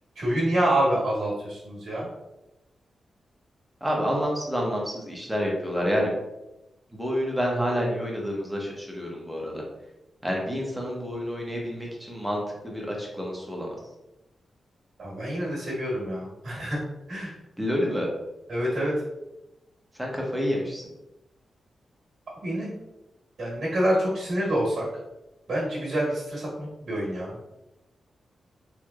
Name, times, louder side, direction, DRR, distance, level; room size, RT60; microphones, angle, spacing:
voice 1, 0.2-2.1 15.0-16.8 17.1-17.3 18.5-18.9 22.4-22.7 23.4-24.9 25.5-27.3, right 1 dB, 65° right, -5 dB, 1.3 m, -27 dB
voice 2, 3.8-6.1 6.9-9.6 10.2-13.8 17.6-18.1 20.0-20.8, equal, 5° right, -2 dB, 0.9 m, -28 dB
3.3 x 3.1 x 2.4 m, 0.95 s
cardioid pair, 85°, 0 cm